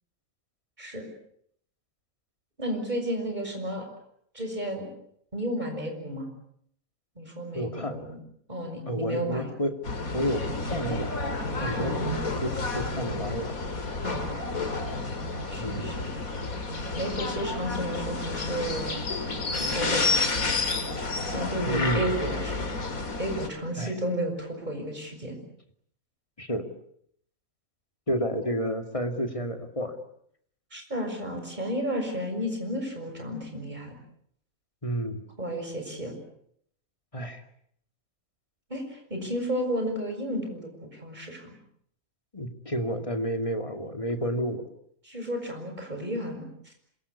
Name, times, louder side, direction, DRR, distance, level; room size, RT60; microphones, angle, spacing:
voice 1, 2.6-3.9 4.3-4.9 5.3-6.3 7.1-8.2 8.5-9.5 11.8-12.1 14.0-14.8 15.5-16.1 16.9-19.0 19.6-20.6 21.0-22.7 23.2-25.4 30.7-34.0 35.4-36.2 38.7-41.5 45.0-46.7, equal, 30° right, 4 dB, 6.7 m, -33 dB
voice 2, 7.5-8.0 8.9-9.8 10.1-11.1 11.6-13.5 13.9-14.0 15.6-16.0 21.7-22.1 23.8-23.9 26.4-26.7 28.1-30.0 34.8-35.2 37.1-37.4 42.3-44.6, equal, 25° left, 6 dB, 2.5 m, -30 dB
sound 1, 9.8-23.5, left 3 dB, 80° left, 3.2 m, -30 dB
27.0 x 22.5 x 8.5 m, 0.69 s
omnidirectional pair, 1.5 m